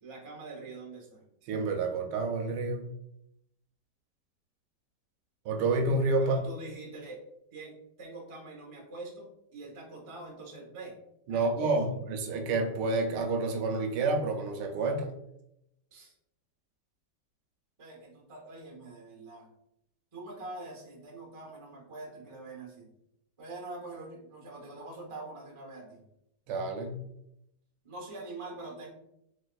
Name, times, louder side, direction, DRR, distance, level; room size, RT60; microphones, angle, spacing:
voice 1, 0.0-1.2 6.2-7.2 7.5-10.9 11.3-11.8 15.9-16.1 17.8-19.5 20.1-22.9 23.4-26.0 27.8-28.9, right 3 dB, 40° right, -1 dB, 0.4 m, -44 dB
voice 2, 1.5-2.9 5.4-6.4 11.3-15.1 26.5-27.0, right 3 dB, 80° right, 4 dB, 1.2 m, -29 dB
3.3 x 3.1 x 2.2 m, 0.80 s
omnidirectional pair, 1.9 m